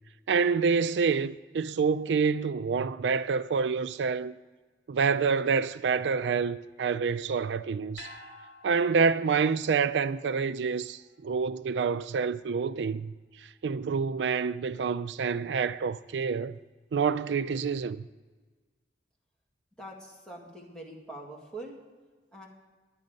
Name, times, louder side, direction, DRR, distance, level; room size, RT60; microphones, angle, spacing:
voice 1, 0.3-4.4 4.9-8.1 8.6-13.1 13.6-16.6 16.9-18.0, right 5 dB, 80° right, 0.4 m, -27 dB
sound 1, 8.0-12.3 12.6-12.7, left 2 dB, 70° left, 2.3 m, -52 dB
voice 2, 19.8-21.8 22.3-22.5, right 1 dB, 5° left, 2.0 m, -43 dB
11.0 x 9.9 x 5.2 m
head